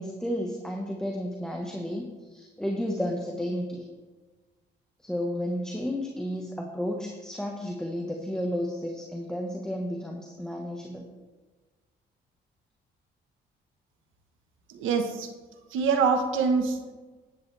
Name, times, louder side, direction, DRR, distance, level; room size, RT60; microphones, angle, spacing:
voice 1, 0.0-3.9 5.0-11.1, equal, 5° left, 0 dB, 1.3 m, -32 dB
voice 2, 14.7-15.3 15.7-16.9, right 5 dB, 90° right, 6 dB, 1.3 m, -25 dB
11.0 x 10.5 x 3.4 m, 1.3 s
cardioid pair, 90°, 20 cm